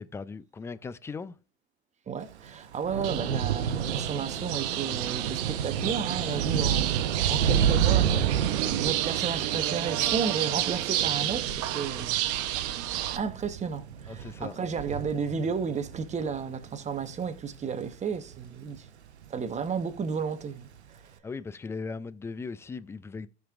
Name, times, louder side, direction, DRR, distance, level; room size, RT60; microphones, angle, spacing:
voice 1, 0.0-1.4 14.1-14.6 21.2-23.3, left 4 dB, 10° left, 0.3 m, -38 dB
voice 2, 2.1-12.1 13.1-18.9 19.3-20.7, right 6 dB, 20° right, 1.0 m, -33 dB
Thunder / Rain, 2.3-18.9 19.2-19.7 19.9-20.1, right 8 dB, 90° right, 0.8 m, -31 dB
sound 1, 3.0-13.2, right 13 dB, 45° right, 0.8 m, -31 dB
15.5 x 5.3 x 2.4 m
hypercardioid pair, 95°, 32 cm